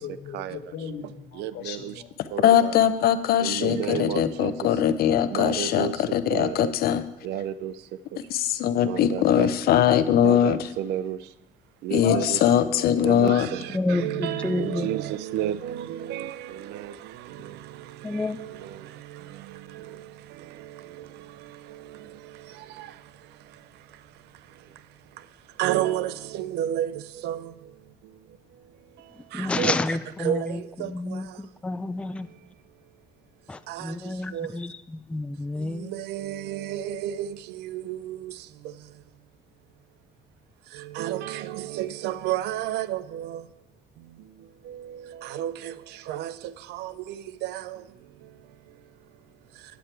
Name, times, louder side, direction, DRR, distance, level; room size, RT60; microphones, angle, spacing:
voice 1, 0.0-2.3 3.5-4.8 5.1-6.0 7.2-7.3 12.0-14.7, left 7 dB, 80° left, 6 dB, 1.1 m, -37 dB
voice 2, 1.3-1.9 2.3-2.8 3.4-4.5 5.3-6.7 7.2-7.7 8.8-9.5 10.2-11.2 11.8-12.4 13.0-17.8 18.1-20.0 20.6-21.1 21.7-22.0 22.8-22.9 25.6-27.5 29.3-29.8 30.2-31.2 33.7-33.9 34.3-34.5 35.6-38.3 40.7-43.4 44.7-45.7 46.1-47.8, right 11 dB, 80° right, 17 dB, 0.4 m, -32 dB
voice 3, 2.4-7.0 8.3-10.6 11.9-12.2 12.4-13.5, left 10 dB, 65° left, 12 dB, 0.7 m, -21 dB
voice 4, 13.7-14.9 18.0-18.4 29.3-32.3 33.5-35.9, left 2 dB, 5° left, 11 dB, 0.3 m, -30 dB
9.3 x 8.2 x 4.4 m, 0.98 s
cardioid pair, 110°, 17 cm